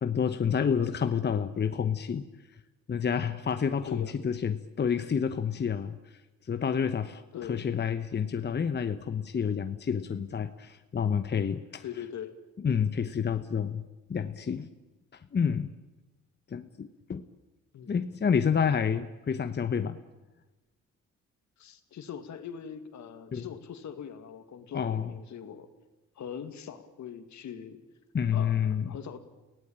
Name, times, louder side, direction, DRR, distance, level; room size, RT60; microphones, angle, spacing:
voice 1, 0.0-2.2 2.9-6.2 6.5-7.2 7.5-11.8 12.6-13.8 14.1-14.7 15.1-15.7 16.5-17.3 17.9-20.0 23.3-23.5 24.7-25.1 28.1-29.0, left 7 dB, 35° left, 9 dB, 1.1 m, -29 dB
voice 2, 7.3-7.7 11.8-12.4 17.7-18.0 21.6-25.7 26.2-27.8 28.3-29.2, left 8 dB, 70° left, 8 dB, 2.4 m, -41 dB
29.0 x 17.5 x 8.9 m, 1.2 s
cardioid pair, 90°, 30 cm